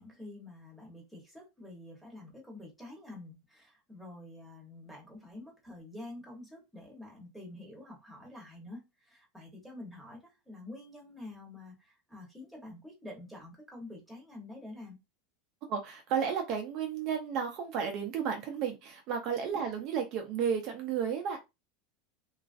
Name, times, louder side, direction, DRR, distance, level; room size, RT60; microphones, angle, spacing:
voice 1, 0.0-15.0 19.5-19.6, left 1 dB, ahead, -3 dB, 0.9 m, -48 dB
voice 2, 15.7-21.4, right 7 dB, 35° right, 4 dB, 0.4 m, -33 dB
2.9 x 2.3 x 2.5 m, 0.23 s
supercardioid pair, 170°, 0 cm